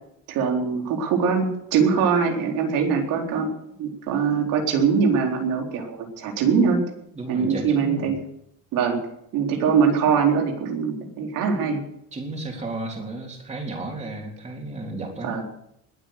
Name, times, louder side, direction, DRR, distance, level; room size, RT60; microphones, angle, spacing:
voice 1, 0.3-3.5 3.8-6.8 7.3-8.2 8.7-9.0 9.3-11.8 15.2-15.4, right 6 dB, 85° right, 1 dB, 4.1 m, -22 dB
voice 2, 7.1-8.2 12.1-15.3, right 2 dB, 20° right, 1 dB, 3.8 m, -33 dB
21.0 x 8.5 x 6.7 m, 0.77 s
cardioid pair, 160°, 31 cm